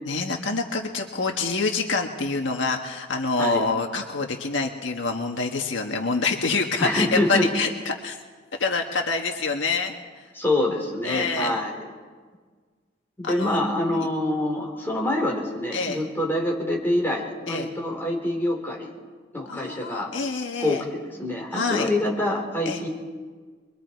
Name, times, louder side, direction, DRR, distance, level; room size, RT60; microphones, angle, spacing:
voice 1, 0.1-8.2 8.6-10.2 11.0-11.6 13.2-13.6 15.7-16.0 17.5-17.7 19.5-20.8 21.5-21.9 22.6-22.8, left 4 dB, 75° left, 3 dB, 1.7 m, -26 dB
voice 2, 6.8-7.4 10.4-11.8 13.2-18.9 19.3-20.1 20.6-22.9, left 1 dB, 10° left, -2 dB, 4.1 m, -26 dB
25.0 x 23.0 x 4.7 m, 1.5 s
head